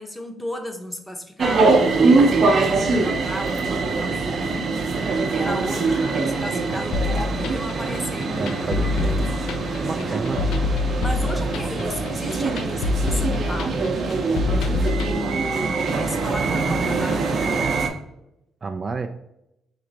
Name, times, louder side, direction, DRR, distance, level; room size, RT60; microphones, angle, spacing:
voice 1, 0.0-4.8 5.3-8.8 9.9-10.2 11.0-14.2 15.0-17.7, equal, 5° left, 4 dB, 0.8 m, -34 dB
sound 1, 1.4-17.9, right 3 dB, 55° right, 0.7 m, -23 dB
sound 2, 3.9-16.2 16.5-16.7, left 1 dB, 30° left, 0.9 m, -43 dB
sound 3, 6.9-15.1, left 3 dB, 85° left, 0.3 m, -25 dB
voice 2, 8.4-9.3 9.8-10.4 11.3-11.4 18.6-19.1, right 4 dB, 35° right, 5 dB, 0.3 m, -30 dB
3.1 x 3.0 x 3.9 m, 0.84 s
cardioid pair, 90°, 0 cm